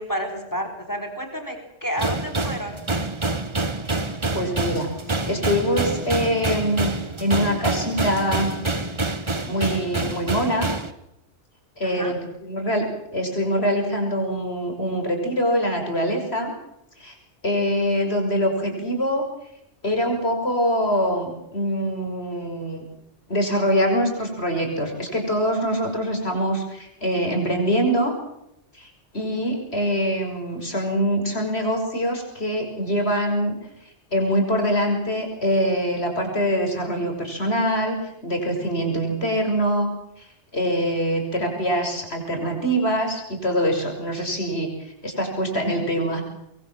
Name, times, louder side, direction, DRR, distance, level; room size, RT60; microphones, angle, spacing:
voice 1, 0.0-2.8 11.8-12.2, equal, 15° left, 6 dB, 4.1 m, -30 dB
sound 1, 2.0-10.9, right 2 dB, 25° right, 1.4 m, -27 dB
voice 2, 4.3-4.9 5.3-6.9 7.2-8.5 9.5-10.7 11.8-12.8 13.1-16.5 17.0-17.2 17.4-19.2 19.8-22.9 23.3-28.1 28.8-33.5 34.1-39.9 40.2-40.3 40.5-44.7 45.0-46.2, equal, 65° left, 3 dB, 6.5 m, -24 dB
25.0 x 22.5 x 7.7 m, 0.80 s
omnidirectional pair, 1.2 m